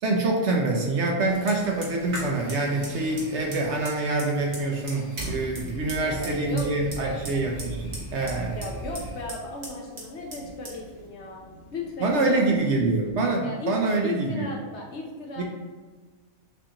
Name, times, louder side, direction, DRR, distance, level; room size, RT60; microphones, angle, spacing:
voice 1, 0.0-8.6 12.0-14.5 15.4-15.5, right 2 dB, 60° right, 0 dB, 0.8 m, -25 dB
Fire, 1.3-13.1, right 1 dB, 45° right, 1.3 m, -39 dB
voice 2, 6.0-6.7 7.0-7.3 8.5-11.4 11.7-12.6 13.4-13.8 14.0-15.4, left 3 dB, 60° left, 0 dB, 0.8 m, -36 dB
6.7 x 2.6 x 2.9 m, 1.4 s
omnidirectional pair, 1.5 m